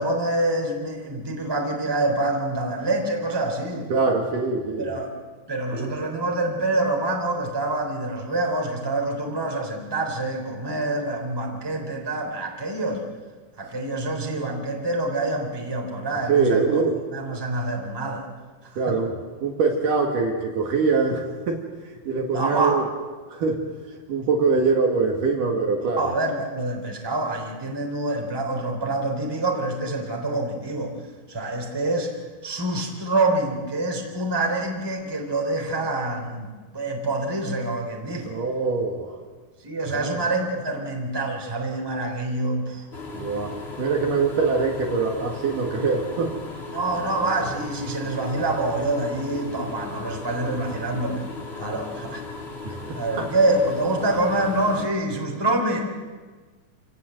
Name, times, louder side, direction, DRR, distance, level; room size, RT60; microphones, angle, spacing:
voice 1, 0.0-3.9 4.8-5.1 5.5-13.0 13.6-16.7 17.1-18.3 18.6-19.0 22.3-22.9 26.0-30.9 31.3-32.1 32.4-38.3 39.6-42.9 46.7-51.2 51.5-52.2 52.9-55.8, right 2 dB, 5° right, 2 dB, 2.8 m, -26 dB
voice 2, 3.9-4.9 5.7-5.9 16.3-17.0 18.8-21.6 22.0-22.8 23.3-23.6 24.1-26.1 38.3-39.2 40.0-40.2 43.1-46.3 52.6-53.3, right 4 dB, 60° right, 2 dB, 3.2 m, -23 dB
sound 1, 42.9-54.9, left 3 dB, 20° left, 1.9 m, -36 dB
28.0 x 17.5 x 7.8 m, 1.4 s
omnidirectional pair, 4.7 m